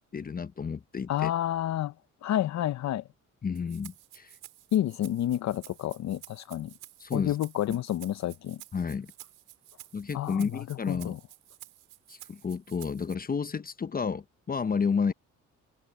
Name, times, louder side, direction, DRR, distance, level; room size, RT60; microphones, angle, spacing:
voice 1, 0.1-1.3 3.4-4.3 7.0-7.4 7.7-7.8 8.7-9.1 9.9-11.2 12.1-15.1, left 5 dB, 30° left, 0.8 m, -31 dB
voice 2, 1.1-1.9 2.2-3.0 4.7-6.7 7.1-8.6 10.1-11.2, left 12 dB, 65° left, 0.7 m, -29 dB
Rattle (instrument), 3.6-13.2, right 14 dB, 90° right, 5.6 m, -51 dB
cardioid pair, 90°, 30 cm